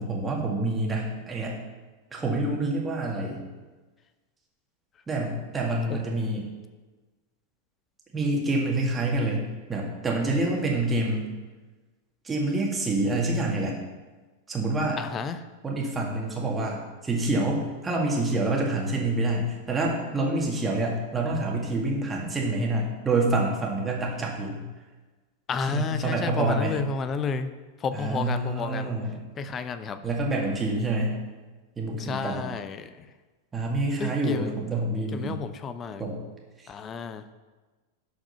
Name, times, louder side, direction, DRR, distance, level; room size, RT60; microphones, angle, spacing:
voice 1, 0.0-1.5 2.1-3.4 5.1-6.5 8.1-11.3 12.2-13.8 14.5-15.0 15.6-24.6 25.6-26.8 27.9-29.1 30.0-31.2 31.8-32.5 33.5-35.4 36.0-36.2, right 2 dB, 15° right, -2 dB, 2.2 m, -27 dB
voice 2, 15.0-15.4 25.5-27.5 27.8-28.9 29.4-30.0 31.9-33.1 34.0-34.5 35.1-36.0 36.7-37.2, left 5 dB, 25° left, 11 dB, 0.6 m, -31 dB
11.5 x 5.1 x 5.6 m, 1.3 s
figure-of-eight pair, 90°, 0 cm